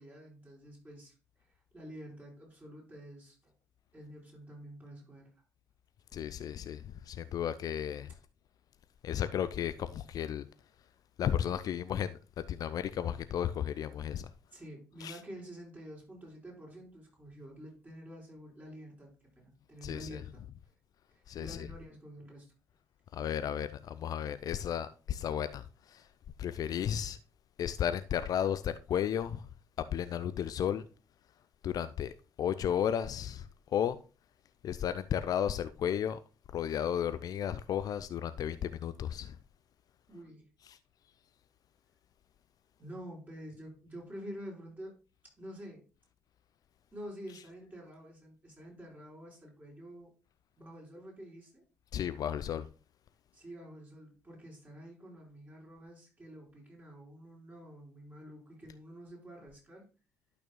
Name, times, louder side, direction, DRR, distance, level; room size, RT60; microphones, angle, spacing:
voice 1, 0.0-3.5 3.9-5.3 14.5-20.4 21.1-22.5 40.1-40.4 42.8-45.0 45.4-45.8 46.9-50.1 50.6-51.6 53.3-59.9, equal, 20° right, 4.5 m, -48 dB
voice 2, 6.1-8.1 9.0-10.4 11.2-14.3 15.0-15.2 19.8-20.2 21.3-21.7 23.1-26.1 26.4-27.2 27.6-29.5 29.9-30.8 31.6-34.0 34.6-36.2 36.5-39.4 40.7-40.8 51.9-52.7, left 9 dB, 45° left, 0.4 m, -34 dB
12.0 x 6.0 x 2.2 m
figure-of-eight pair, 45°, 9 cm